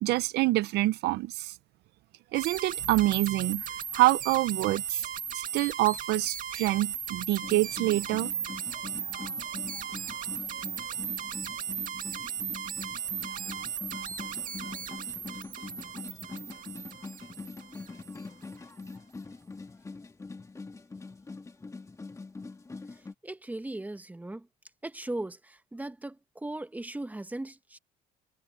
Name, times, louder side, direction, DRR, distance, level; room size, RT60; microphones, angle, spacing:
voice 1, 0.0-1.5 2.3-3.6 3.9-5.0 5.5-8.3, right 17 dB, 80° right, 0.7 m, -26 dB
sound 1, 2.3-18.2, right 8 dB, 55° right, 2.3 m, -36 dB
sound 2, 7.4-23.1, left 3 dB, 20° left, 1.9 m, -44 dB
voice 2, 23.2-24.5 24.8-27.8, right 2 dB, 10° right, 1.3 m, -38 dB
cardioid pair, 110°, 17 cm